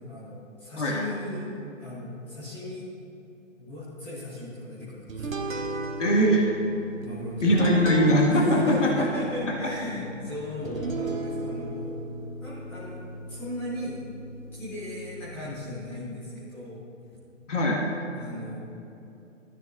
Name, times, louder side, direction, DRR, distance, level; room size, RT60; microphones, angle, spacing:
voice 1, 0.1-2.9 3.6-5.4 7.0-7.6 8.3-12.0 12.4-14.0 14.5-16.8 18.1-18.6, left 1 dB, 5° left, -10 dB, 0.6 m, -36 dB
sound 1, 5.1-15.7, right 2 dB, 85° right, 1.2 m, -35 dB
voice 2, 6.0-6.4 7.4-8.9 17.5-17.8, equal, 65° left, -2 dB, 2.0 m, -21 dB
13.5 x 9.5 x 2.6 m, 2.8 s
figure-of-eight pair, 140°, 39 cm